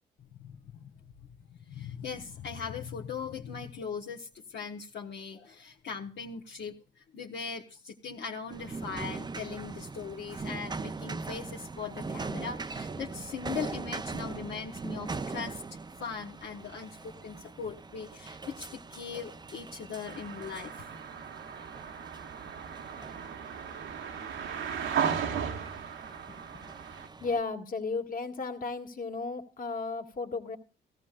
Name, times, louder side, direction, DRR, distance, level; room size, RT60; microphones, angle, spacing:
voice 1, 0.3-0.9 1.5-15.6 16.0-20.9, left 6 dB, 60° left, -1 dB, 1.2 m, -40 dB
sound 1, 8.5-27.4, right 4 dB, 20° right, 0.6 m, -41 dB
sound 2, 20.1-27.1, right 7 dB, 75° right, 1.2 m, -36 dB
voice 2, 27.2-30.6, left 4 dB, 45° left, 4 dB, 2.0 m, -34 dB
16.5 x 14.0 x 2.4 m, 0.36 s
cardioid pair, 90°, 20 cm